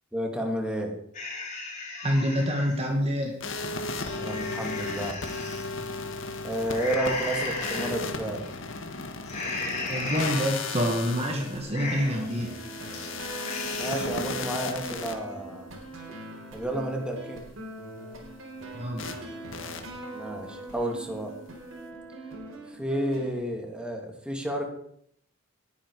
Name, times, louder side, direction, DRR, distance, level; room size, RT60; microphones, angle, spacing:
voice 1, 0.1-1.0 4.2-5.2 6.4-8.5 13.8-15.8 16.5-17.4 20.1-21.3 22.7-24.6, right 1 dB, 5° right, 1 dB, 2.6 m, -31 dB
sound 1, 1.1-2.8 3.2-3.3 3.8-5.6 6.7-7.9 8.4-8.8 9.3-10.8 11.2-11.3 11.6-12.3 12.7-13.1 13.3-14.3, left 3 dB, 35° left, 5.0 m, -35 dB
voice 2, 2.0-3.5 9.9-12.5 18.7-19.0, equal, 30° right, 2 dB, 1.8 m, -27 dB
sound 2, 3.4-15.1 19.0-19.2 19.5-19.8, left 3 dB, 70° left, 1.8 m, -35 dB
sound 3, 11.2-23.3, right 1 dB, 90° right, 4.4 m, -42 dB
20.0 x 10.0 x 4.9 m, 0.67 s
head